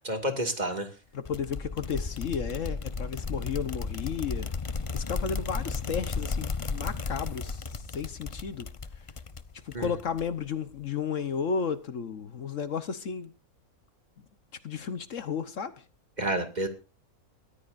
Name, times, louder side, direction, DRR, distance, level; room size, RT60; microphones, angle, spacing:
voice 1, 0.0-0.9 9.7-9.9 16.2-16.7, right 1 dB, 30° right, 2.3 m, -29 dB
voice 2, 1.1-8.7 9.6-13.3 14.6-15.8, left 6 dB, 65° left, 1.3 m, -33 dB
sound 1, 1.3-10.5, left 4 dB, 30° left, 0.6 m, -34 dB
22.5 x 14.5 x 2.6 m
omnidirectional pair, 1.5 m